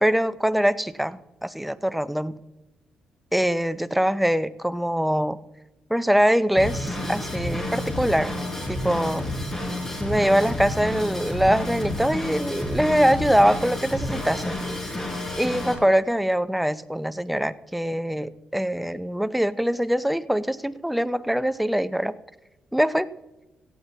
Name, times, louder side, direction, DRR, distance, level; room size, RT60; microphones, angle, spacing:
voice 1, 0.0-2.4 3.3-5.4 5.9-8.3 8.7-9.2 10.0-14.9 15.4-22.1 22.7-23.1, equal, ahead, 13 dB, 0.5 m, -23 dB
Drum kit / Drum, 6.6-15.7, left 1 dB, 15° left, 4.1 m, -30 dB
17.5 x 14.0 x 2.8 m, 1.0 s
cardioid pair, 115°, 3 cm